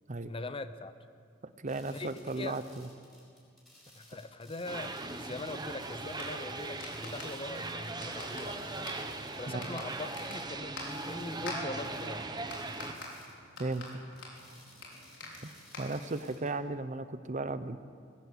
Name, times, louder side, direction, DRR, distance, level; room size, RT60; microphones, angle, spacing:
voice 1, 0.2-0.9 1.9-2.1 2.4-2.5 4.0-8.9 9.3-12.2 15.2-15.3, left 2 dB, 30° left, 11 dB, 0.8 m, -42 dB
voice 2, 1.4-2.6 9.5-9.8 13.6-14.0 15.4-15.5 15.8-17.8, right 2 dB, 40° right, 12 dB, 0.8 m, -35 dB
sound 1, 1.7-10.5 10.8-16.5, left 1 dB, ahead, 7.2 m, -59 dB
sound 2, 4.7-12.9, right 3 dB, 25° right, 1.1 m, -39 dB
sound 3, 6.1-16.3, left 2 dB, 80° left, 5.1 m, -47 dB
20.0 x 17.0 x 8.2 m, 2.2 s
head